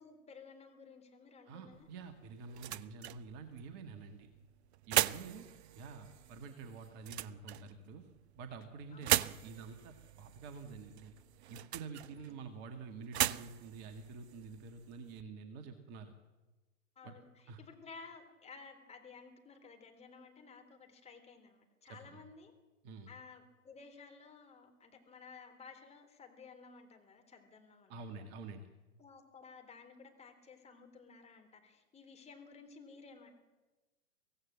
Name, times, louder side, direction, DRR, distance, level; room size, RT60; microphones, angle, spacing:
voice 1, 0.0-1.9 5.2-5.6 8.9-9.1 12.1-12.5 17.0-22.5 23.1-28.3 29.0-33.3, left 5 dB, 15° left, 5 dB, 3.8 m, -55 dB
voice 2, 1.5-4.3 4.9-5.5 5.8-8.0 8.4-11.1 11.5-16.1 17.0-17.1 17.5-17.6 21.9-22.2 22.8-23.1 27.9-28.7, right 4 dB, 35° right, 6 dB, 2.0 m, -48 dB
sound 1, 1.7-15.2, right 13 dB, 55° right, 0.8 m, -39 dB
24.5 x 17.0 x 7.6 m, 1.2 s
figure-of-eight pair, 110°, 40 cm